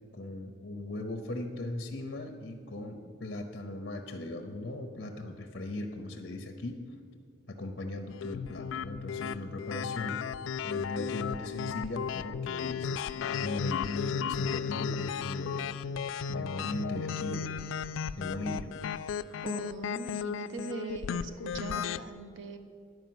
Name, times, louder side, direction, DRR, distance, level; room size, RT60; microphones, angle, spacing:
voice 1, 0.1-6.8 7.5-10.2 10.6-15.7 16.3-17.5 18.2-18.7, left 2 dB, 50° left, 4 dB, 0.7 m, -38 dB
sound 1, 8.2-22.0, left 7 dB, 85° left, 0.3 m, -35 dB
voice 2, 19.4-22.6, right 4 dB, 75° right, 7 dB, 0.8 m, -40 dB
10.5 x 4.8 x 7.7 m, 2.3 s
head